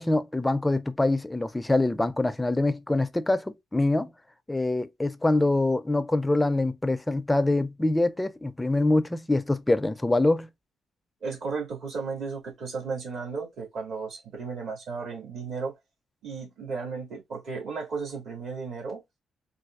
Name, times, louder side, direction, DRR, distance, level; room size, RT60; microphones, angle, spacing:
voice 1, 0.0-4.1 4.5-10.5, left 2 dB, 10° left, 0.4 m, -24 dB
voice 2, 11.2-15.7 16.2-19.0, right 4 dB, 65° right, 2.1 m, -34 dB
4.1 x 2.3 x 2.3 m
cardioid pair, 90°, 0 cm